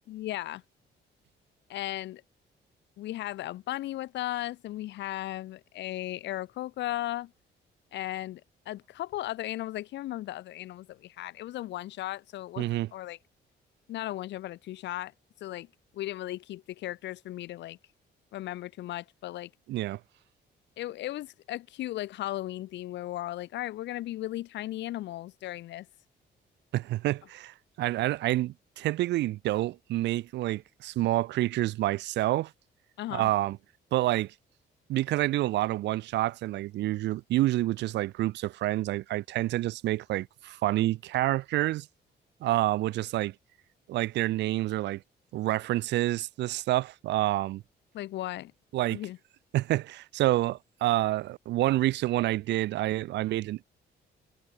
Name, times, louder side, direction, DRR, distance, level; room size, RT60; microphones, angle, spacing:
voice 1, 0.1-0.6 1.7-2.2 3.0-7.3 7.9-13.2 13.9-15.1 15.4-15.7 15.9-17.8 18.3-19.5 20.8-25.9 33.0-33.3 47.9-48.5 48.9-49.2, left 15 dB, 90° left, 1.6 m, -36 dB
voice 2, 12.6-12.9 19.7-20.0 26.7-32.5 33.1-33.6 33.9-34.3 34.9-41.9 42.4-43.3 43.9-45.0 45.3-47.6 48.7-49.0 49.5-53.6, right 16 dB, 80° right, 0.6 m, -28 dB
cardioid pair, 160°, 18 cm